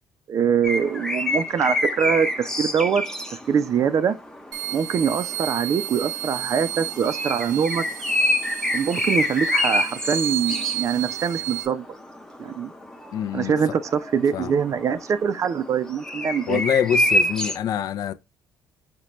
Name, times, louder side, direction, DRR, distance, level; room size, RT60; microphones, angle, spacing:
voice 1, 0.3-3.0 3.5-4.1 4.7-7.8 8.7-11.9 12.4-12.7 13.3-16.6, right 7 dB, 45° right, 0.4 m, -23 dB
sound 1, 0.6-17.6, left 1 dB, 10° left, 0.6 m, -28 dB
sound 2, 4.5-11.7, right 14 dB, 75° right, 0.8 m, -32 dB
voice 2, 13.1-13.6 14.3-14.6 16.5-18.1, left 9 dB, 55° left, 0.4 m, -25 dB
5.1 x 2.2 x 2.9 m
cardioid pair, 100°, 7 cm